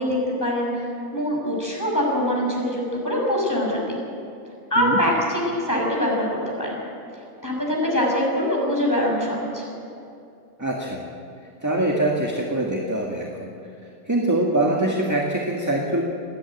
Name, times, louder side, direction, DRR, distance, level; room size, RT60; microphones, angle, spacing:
voice 1, 0.0-4.0 4.7-6.7 7.4-9.7, equal, 10° left, -3 dB, 6.2 m, -23 dB
voice 2, 10.6-11.1 11.6-13.5 14.1-16.0, right 1 dB, 10° right, -1 dB, 1.7 m, -23 dB
28.0 x 10.5 x 9.2 m, 2.6 s
omnidirectional pair, 1.5 m